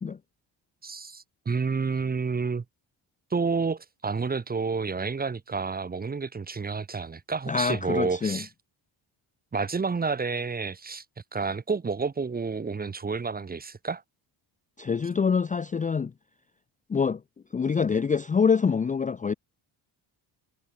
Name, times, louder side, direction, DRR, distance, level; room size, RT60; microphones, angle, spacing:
voice 1, 0.8-2.6 3.3-8.5 9.5-11.0 11.3-14.0, right 4 dB, 20° right, 0.8 m, -30 dB
voice 2, 7.5-8.4 14.8-16.1 16.9-17.2 17.5-19.3, left 5 dB, 15° left, 0.4 m, -25 dB
cardioid pair, 95°, 48 cm